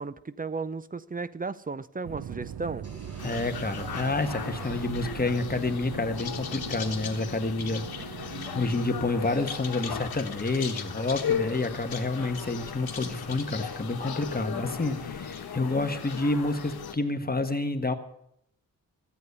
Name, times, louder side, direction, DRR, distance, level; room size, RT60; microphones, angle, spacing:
voice 1, 0.0-2.9, right 4 dB, 25° right, 0.6 m, -34 dB
sound 1, 2.0-9.2, right 9 dB, 80° right, 0.7 m, -40 dB
sound 2, 2.8-6.7, right 2 dB, 40° right, 4.4 m, -50 dB
sound 3, 3.2-16.9, left 7 dB, 80° left, 1.4 m, -36 dB
voice 2, 3.2-17.9, left 2 dB, 25° left, 1.5 m, -29 dB
14.0 x 8.5 x 8.2 m
cardioid pair, 70°, 36 cm